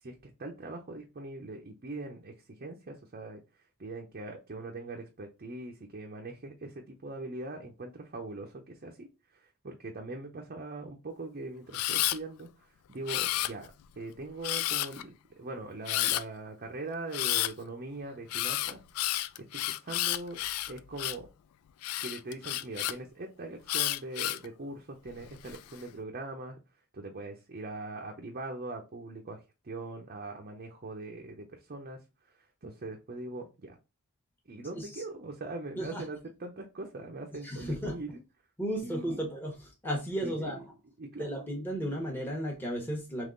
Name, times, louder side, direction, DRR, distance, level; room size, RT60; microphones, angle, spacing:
voice 1, 0.0-3.4 3.8-9.1 9.3-18.8 19.4-20.4 20.7-21.3 22.0-26.6 26.9-32.0 32.6-33.8 34.5-38.2 38.8-39.3 40.2-40.6 41.0-41.5, right 2 dB, 45° right, 0.6 m, -41 dB
Camera, 11.7-12.2 13.1-13.8 14.4-15.0 15.9-16.2 17.1-17.5 18.3-21.3 21.8-22.9 23.7-24.5 25.1-25.6, left 14 dB, 80° left, 0.3 m, -31 dB
voice 2, 37.4-37.9 38.6-40.6 41.2-43.3, equal, 10° left, 1.0 m, -34 dB
3.6 x 3.1 x 3.7 m
head